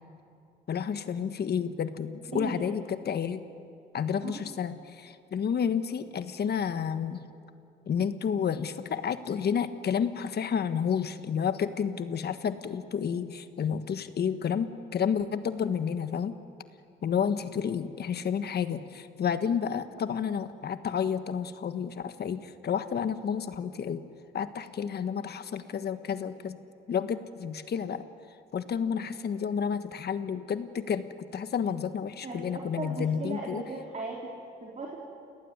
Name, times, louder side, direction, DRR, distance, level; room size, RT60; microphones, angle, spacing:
voice 1, 0.7-3.4 3.9-7.2 7.9-16.3 17.0-24.0 24.3-26.6 26.9-28.0 28.5-33.6, left 7 dB, 55° left, 11 dB, 1.4 m, -30 dB
voice 2, 2.3-2.7 4.2-4.6 32.2-34.3 34.6-35.0, right 3 dB, 35° right, -2 dB, 4.3 m, -37 dB
29.0 x 18.5 x 9.7 m, 2.5 s
cardioid pair, 90°, 20 cm